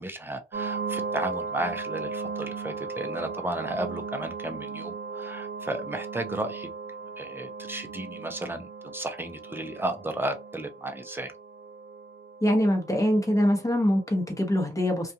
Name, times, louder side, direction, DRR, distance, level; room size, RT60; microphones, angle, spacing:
voice 1, 0.0-6.7 7.2-11.3, right 1 dB, 10° right, 5 dB, 0.6 m, -34 dB
sound 1, 0.5-14.2, right 4 dB, 55° right, 0.8 m, -37 dB
voice 2, 12.4-15.1, equal, 15° left, 1 dB, 1.0 m, -23 dB
2.4 x 2.3 x 2.7 m, 0.27 s
cardioid pair, 90°, 19 cm